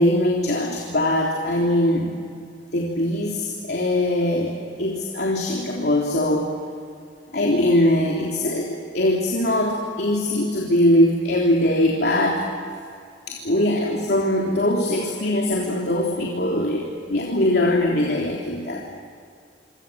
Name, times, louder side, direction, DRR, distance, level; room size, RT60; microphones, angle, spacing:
voice 1, 0.0-2.2 2.7-6.5 7.3-12.4 13.3-18.8, left 1 dB, 65° left, -1 dB, 3.6 m, -21 dB
27.5 x 25.5 x 7.6 m, 2.3 s
head